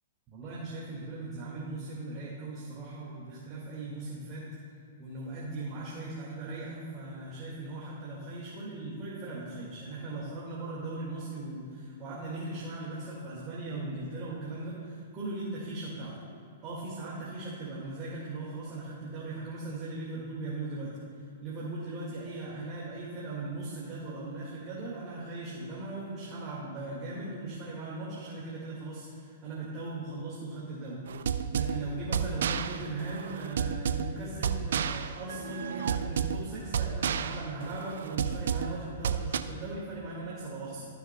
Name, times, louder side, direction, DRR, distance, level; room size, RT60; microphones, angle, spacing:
voice 1, 0.3-4.5 5.0-16.2 16.6-20.9 21.4-31.0 31.5-40.8, right 2 dB, 35° right, -6 dB, 1.8 m, -38 dB
sound 1, 31.1-39.4, right 7 dB, 65° right, 0.4 m, -31 dB
15.5 x 5.8 x 2.2 m, 2.6 s
hypercardioid pair, 115°, 0 cm